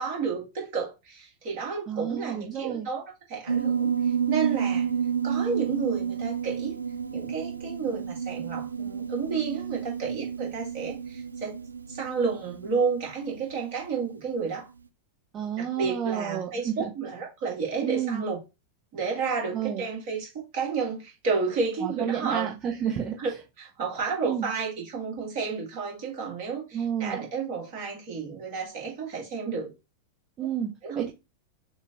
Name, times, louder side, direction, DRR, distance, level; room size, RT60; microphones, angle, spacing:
voice 1, 0.0-3.0 3.3-3.9 4.3-4.9 5.2-6.8 7.1-11.6 11.9-14.7 15.6-18.4 18.9-22.5 23.2-29.7 30.8-31.1, right 5 dB, 50° right, 2.1 m, -31 dB
voice 2, 1.9-2.9 15.3-16.9 17.8-18.2 19.5-19.9 21.8-23.3 24.2-24.5 26.7-27.2 30.4-31.1, right 9 dB, 30° right, 0.7 m, -30 dB
Piano, 3.5-14.2, right 7 dB, 75° right, 0.3 m, -30 dB
6.6 x 2.5 x 3.0 m
figure-of-eight pair, 90°, 0 cm